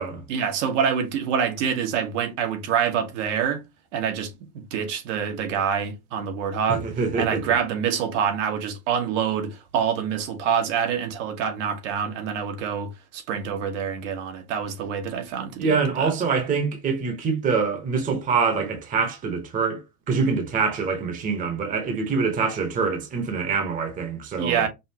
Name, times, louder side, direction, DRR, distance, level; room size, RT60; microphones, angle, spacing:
voice 1, 0.3-3.6 3.9-6.9 7.1-16.1 24.4-24.7, right 7 dB, 65° right, 1.2 m, -26 dB
voice 2, 6.7-7.4 15.6-24.6, right 5 dB, 20° right, 0.9 m, -25 dB
5.4 x 2.5 x 2.8 m
supercardioid pair, 155°, 40 cm